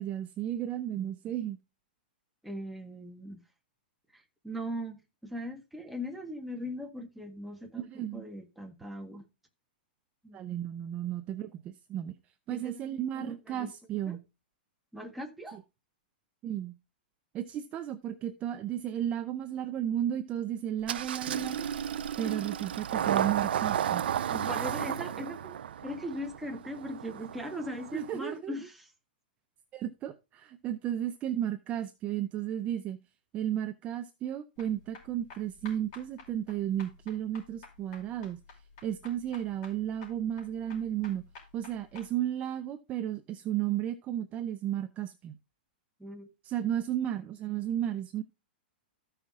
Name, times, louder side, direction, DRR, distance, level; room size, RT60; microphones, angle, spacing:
voice 1, 0.0-1.6 7.9-8.2 10.3-12.2 12.5-14.2 16.4-16.7 17.3-21.7 22.2-24.1 27.9-28.6 29.7-33.0 33.3-38.4 38.8-41.2 41.5-45.3 46.4-48.2, right 11 dB, 25° right, 0.6 m, -33 dB
voice 2, 2.4-3.4 4.1-7.9 8.1-9.2 10.2-10.4 12.5-13.7 14.1-14.2 14.9-15.6 24.3-28.9 46.0-46.3, equal, ahead, 1.4 m, -39 dB
Engine starting, 20.9-28.2, right 9 dB, 80° right, 0.6 m, -33 dB
sound 1, 34.6-42.1, left 4 dB, 40° left, 5.4 m, -51 dB
14.0 x 5.6 x 3.6 m
hypercardioid pair, 145°, 5 cm